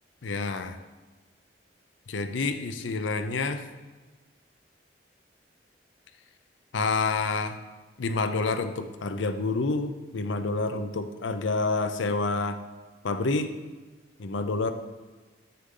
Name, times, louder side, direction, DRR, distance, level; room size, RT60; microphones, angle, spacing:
voice 1, 0.2-0.8 2.1-3.6 6.7-7.6 8.0-12.6 13.0-13.5 14.2-14.7, left 3 dB, 85° left, 9 dB, 0.6 m, -28 dB
7.6 x 6.7 x 3.8 m, 1.3 s
head